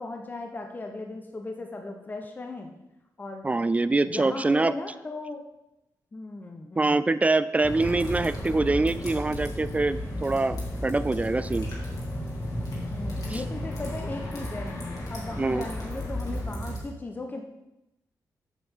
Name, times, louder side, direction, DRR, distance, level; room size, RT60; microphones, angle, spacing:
voice 1, 0.0-2.7 3.2-3.5 4.1-5.5 6.1-7.1 12.9-14.7 15.1-17.4, left 2 dB, 25° left, 3 dB, 1.0 m, -37 dB
voice 2, 3.4-4.7 6.8-11.7 13.3-13.4 15.4-15.7, right 3 dB, 20° right, 14 dB, 0.3 m, -24 dB
sound 1, 7.6-16.8, left 1 dB, 60° left, 3.0 m, -33 dB
8.3 x 7.0 x 5.6 m, 0.91 s
wide cardioid pair, 120°, 7 cm